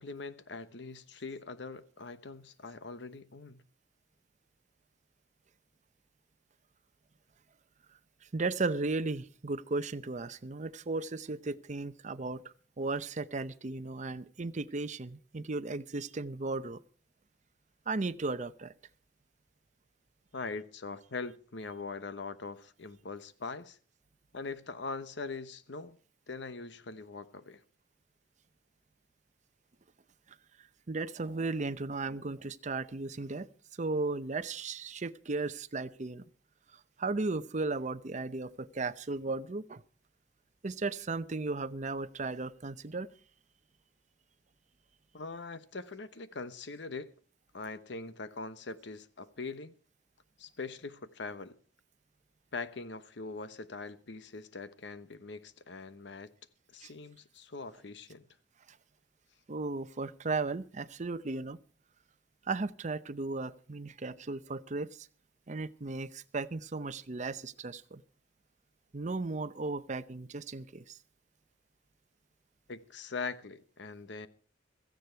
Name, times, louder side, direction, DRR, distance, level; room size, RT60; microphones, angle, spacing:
voice 1, 0.0-3.6 20.3-23.8 24.3-26.0 26.3-27.6 45.1-47.1 47.5-49.7 50.4-51.6 52.5-56.3 56.7-58.2 72.7-74.3, left 4 dB, 65° left, 1.0 m, -42 dB
voice 2, 8.3-12.4 12.8-16.8 17.9-18.7 30.9-33.5 33.8-36.2 37.0-39.8 40.6-43.1 56.8-56.9 59.5-61.6 62.5-64.9 65.5-68.0 68.9-71.0, right 3 dB, 40° right, 0.7 m, -35 dB
16.5 x 14.5 x 4.5 m
head